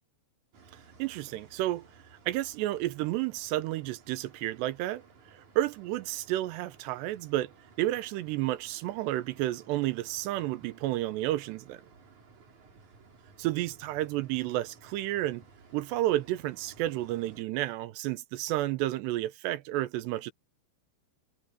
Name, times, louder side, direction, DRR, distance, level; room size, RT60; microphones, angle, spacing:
sound 1, 0.5-17.4, right 4 dB, 40° right, 4.9 m, -57 dB
voice 1, 1.0-1.9 2.3-5.0 5.3-7.5 7.8-11.8 13.4-15.4 15.7-20.3, right 15 dB, 75° right, 2.8 m, -31 dB
omnidirectional pair, 5.3 m